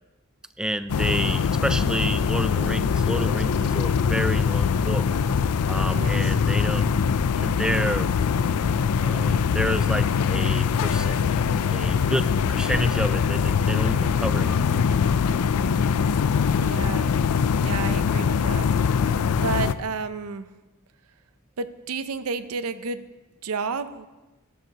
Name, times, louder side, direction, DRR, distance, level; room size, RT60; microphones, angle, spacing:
voice 1, 0.6-5.2 5.7-6.9 7.4-8.1 9.0-11.2 11.7-15.0, right 1 dB, 5° right, 12 dB, 0.3 m, -29 dB
sound 1, 0.9-19.7, left 6 dB, 80° left, 0.4 m, -22 dB
voice 2, 5.9-6.3 16.6-17.1 17.6-19.0 19.3-20.5 21.6-23.1 23.4-24.1, right 4 dB, 75° right, 12 dB, 0.6 m, -31 dB
16.5 x 11.0 x 2.9 m, 1.1 s
head